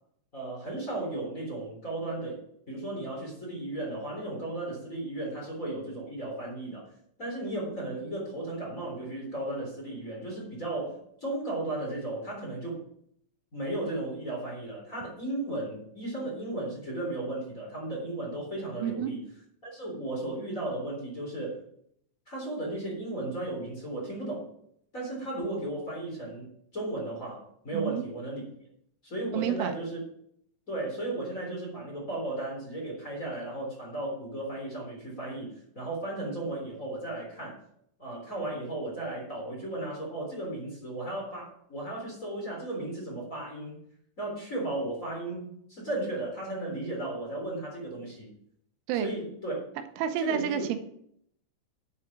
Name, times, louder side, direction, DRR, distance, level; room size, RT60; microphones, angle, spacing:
voice 1, 0.3-2.4 2.7-6.8 7.2-12.8 13.5-19.2 19.6-21.6 22.3-24.5 24.9-28.4 29.0-30.0 30.7-37.5 38.0-43.8 44.2-48.3 49.0-49.6 50.2-50.6, right 2 dB, 20° left, -3 dB, 3.4 m, -35 dB
voice 2, 27.7-28.0 29.3-29.7 48.9-49.1 50.0-50.8, right 9 dB, 80° right, 8 dB, 3.2 m, -29 dB
9.6 x 8.7 x 6.0 m, 0.69 s
omnidirectional pair, 5.6 m